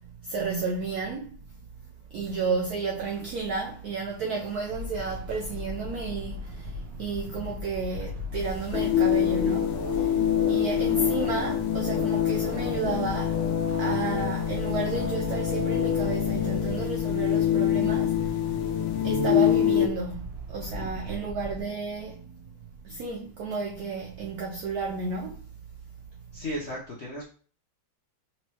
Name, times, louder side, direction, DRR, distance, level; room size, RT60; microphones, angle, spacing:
voice 1, 0.2-1.4 2.1-13.4 13.7-18.5 19.0-22.4 22.8-25.4, right 4 dB, 75° right, 0.8 m, -32 dB
sound 1, 4.6-21.6, left 1 dB, 60° right, 1.1 m, -39 dB
sound 2, 8.4-19.9, left 10 dB, 85° left, 1.4 m, -25 dB
voice 2, 20.7-21.3 26.3-27.2, left 1 dB, 60° left, 0.7 m, -36 dB
4.4 x 3.0 x 2.9 m
omnidirectional pair, 2.2 m